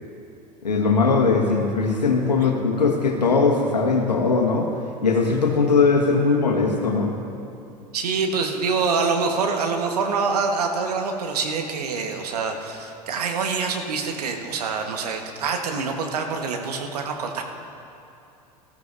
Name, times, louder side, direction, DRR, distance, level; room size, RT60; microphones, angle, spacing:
voice 1, 0.6-4.7 5.0-7.1, left 4 dB, 80° left, 2 dB, 1.6 m, -20 dB
voice 2, 7.9-17.4, right 4 dB, 70° right, 4 dB, 1.4 m, -25 dB
19.5 x 14.0 x 2.6 m, 2.7 s
figure-of-eight pair, 80°, 21 cm